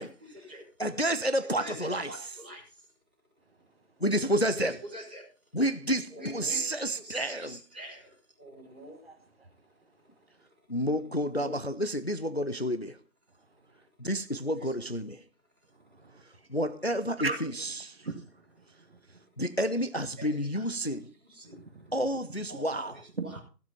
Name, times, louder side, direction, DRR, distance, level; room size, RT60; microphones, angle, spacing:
voice 1, 0.0-0.6 1.4-2.9 4.5-5.3 6.1-9.1 11.3-12.0 14.1-14.2 14.6-15.0 15.6-15.7 17.4-17.6 18.0-18.2 20.2-21.6 22.5-23.4, equal, 5° right, 1.4 m, -46 dB
voice 2, 0.8-2.1 4.0-4.7 5.5-7.6 10.7-13.0 14.0-15.2 16.5-17.5 17.8-17.9 19.4-21.0 21.9-22.9, equal, 40° left, 0.5 m, -29 dB
voice 3, 9.0-9.5 13.5-13.6 15.7-16.2 17.2-17.4 17.6-19.2 21.5-22.0, right 3 dB, 35° right, 1.5 m, -40 dB
15.0 x 7.6 x 5.5 m
figure-of-eight pair, 170°, 49 cm